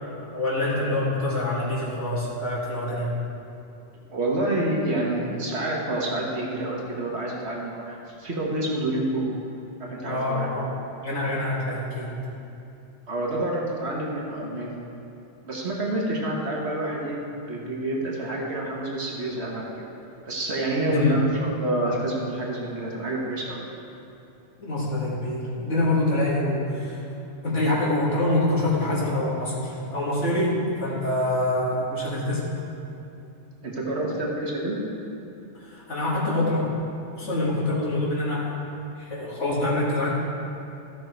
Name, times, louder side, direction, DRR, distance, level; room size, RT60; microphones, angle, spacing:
voice 1, 0.0-3.2 10.0-10.7 11.0-12.2 20.8-21.2 24.6-27.0 27.4-32.5 35.6-36.7 37.2-38.6 39.0-40.1, left 1 dB, 85° left, -7 dB, 2.6 m, -25 dB
voice 2, 4.1-9.2 9.8-10.5 13.1-14.8 15.4-19.8 20.3-23.7 33.6-34.8, right 1 dB, 65° right, -2 dB, 1.6 m, -28 dB
14.0 x 6.2 x 4.5 m, 2.7 s
omnidirectional pair, 1.2 m